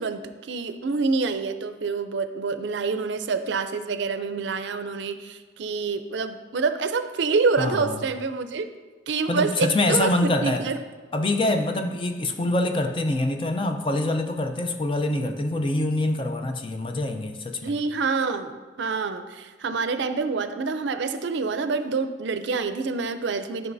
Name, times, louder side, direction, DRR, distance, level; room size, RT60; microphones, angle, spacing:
voice 1, 0.0-8.7 9.1-10.8 17.6-23.7, right 4 dB, 75° right, 10 dB, 0.5 m, -27 dB
voice 2, 7.6-8.0 9.3-10.7 11.1-17.7, left 2 dB, 25° left, 5 dB, 0.5 m, -25 dB
11.0 x 6.0 x 2.6 m, 1.4 s
head